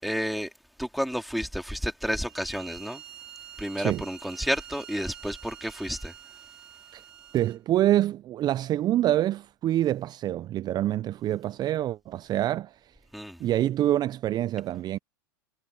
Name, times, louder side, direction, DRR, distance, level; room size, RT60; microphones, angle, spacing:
voice 1, 0.0-0.5 0.8-3.0 3.6-6.1 13.1-13.4, equal, ahead, 4.1 m, -31 dB
Bowed string instrument, 2.3-7.6, right 10 dB, 80° right, 4.3 m, -47 dB
voice 2, 7.3-12.9 13.4-15.0, right 13 dB, 35° right, 0.6 m, -26 dB
hypercardioid pair, 95°, 12 cm